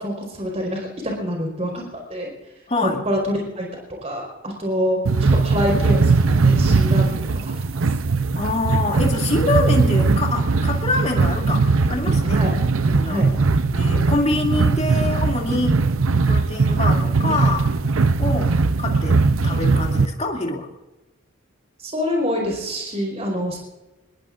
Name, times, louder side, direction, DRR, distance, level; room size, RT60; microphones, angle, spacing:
voice 1, 0.0-2.3 2.8-7.9 12.3-12.5 13.0-13.3 21.8-23.6, equal, 30° right, 0 dB, 4.8 m, -26 dB
voice 2, 2.7-3.0 8.3-12.4 12.9-13.3 13.7-15.8 16.3-17.7 18.2-19.2 19.4-20.7, left 2 dB, 30° left, 0 dB, 2.6 m, -25 dB
sound 1, 5.1-20.1, right 4 dB, 70° right, 0.7 m, -19 dB
25.5 x 21.0 x 2.6 m, 1.1 s
head